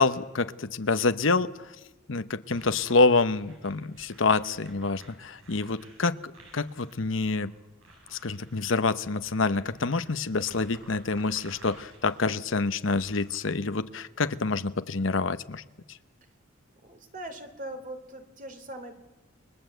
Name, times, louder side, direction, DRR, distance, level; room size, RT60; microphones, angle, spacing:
voice 1, 0.0-1.7 2.1-6.2 6.5-7.5 8.1-15.6 15.9-16.0, left 3 dB, 70° left, 11 dB, 1.0 m, -27 dB
sound 1, 2.5-13.4, right 1 dB, 80° right, 7.5 m, -54 dB
voice 2, 16.8-18.9, right 1 dB, 40° right, 7 dB, 2.9 m, -41 dB
29.5 x 22.0 x 8.0 m, 1.1 s
head